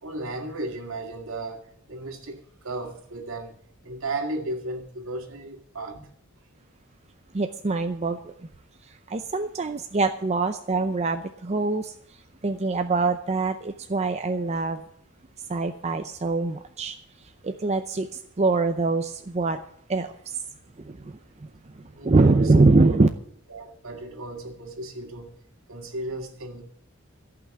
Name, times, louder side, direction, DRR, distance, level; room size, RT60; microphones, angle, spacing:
voice 1, 0.0-3.6 3.8-6.1 21.9-22.5 22.8-22.9 23.5-25.3 25.7-26.6, right 2 dB, 70° right, 2.1 m, -35 dB
voice 2, 7.3-8.3 9.1-11.9 12.4-14.8 15.5-17.0 17.4-18.1 18.4-19.6 19.9-20.4 20.8-21.1 22.0-23.1, right 3 dB, 30° right, 0.6 m, -23 dB
14.5 x 5.9 x 9.8 m
head